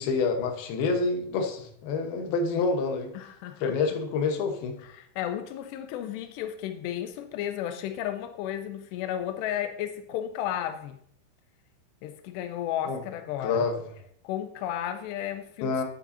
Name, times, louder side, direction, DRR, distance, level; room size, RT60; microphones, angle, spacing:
voice 1, 0.0-3.1 3.6-4.8 12.8-13.0 13.4-13.8 15.6-15.8, left 4 dB, 70° left, 2.9 m, -27 dB
voice 2, 3.2-3.7 4.9-11.0 12.0-13.7 14.2-15.8, left 11 dB, 90° left, 2.8 m, -33 dB
9.0 x 8.7 x 2.7 m
omnidirectional pair, 4.8 m